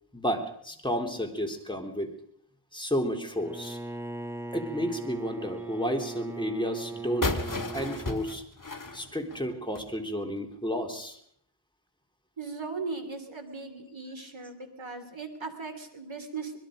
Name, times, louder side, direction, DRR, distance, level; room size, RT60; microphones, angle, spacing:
voice 1, 0.1-2.2 2.7-3.8 4.5-7.4 7.7-8.4 8.9-11.2, equal, 10° left, 3 dB, 3.6 m, -31 dB
Bowed string instrument, 3.4-8.2, right 2 dB, 5° right, 0.8 m, -39 dB
sound 1, 7.2-9.9, left 3 dB, 45° left, 2.1 m, -33 dB
voice 2, 12.4-16.5, right 4 dB, 80° right, 6 dB, 3.4 m, -38 dB
25.0 x 21.5 x 5.2 m, 0.67 s
wide cardioid pair, 45°, 46 cm